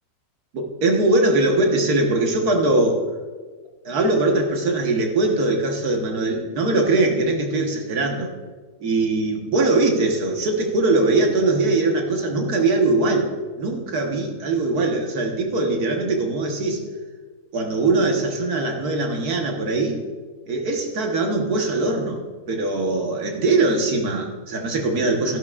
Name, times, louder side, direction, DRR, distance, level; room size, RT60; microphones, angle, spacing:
voice 1, 0.5-3.0 3.9-8.3 8.8-13.3 13.6-16.8 17.5-20.0 20.5-25.4, right 2 dB, 80° right, 2 dB, 1.8 m, -21 dB
13.5 x 12.0 x 2.4 m, 1.4 s
omnidirectional pair, 1.6 m